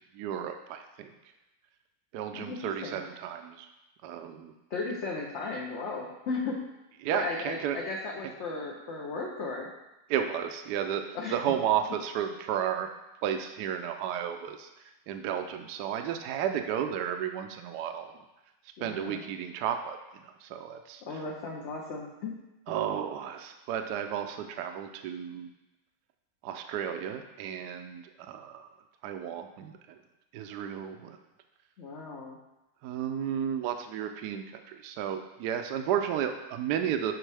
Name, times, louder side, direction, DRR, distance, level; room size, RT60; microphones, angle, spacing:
voice 1, 0.1-1.1 2.1-3.7 4.0-4.5 7.0-7.8 10.1-11.0 11.3-12.9 13.2-18.1 18.8-20.0 20.2-21.2 22.7-25.5 26.4-28.7 29.0-29.8 30.3-31.2 32.8-37.1, right 9 dB, 75° right, 6 dB, 1.1 m, -33 dB
voice 2, 2.3-3.0 4.7-6.6 7.1-9.7 11.1-11.3 18.8-19.2 21.0-22.4 31.8-32.4, left 3 dB, 60° left, -1 dB, 0.8 m, -36 dB
10.5 x 4.1 x 3.3 m, 0.99 s
omnidirectional pair, 1.9 m